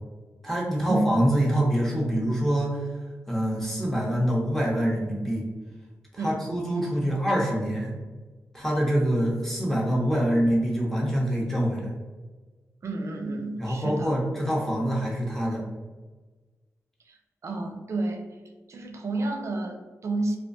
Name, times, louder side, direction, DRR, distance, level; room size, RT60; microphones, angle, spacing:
voice 1, 0.4-2.9 3.3-5.4 6.1-7.9 8.5-11.9 13.6-15.6, equal, 5° left, -4 dB, 0.7 m, -25 dB
voice 2, 12.8-14.1 17.0-18.3 18.7-20.4, right 2 dB, 55° right, 4 dB, 0.4 m, -30 dB
2.3 x 2.2 x 2.5 m, 1.3 s
cardioid pair, 55°, 6 cm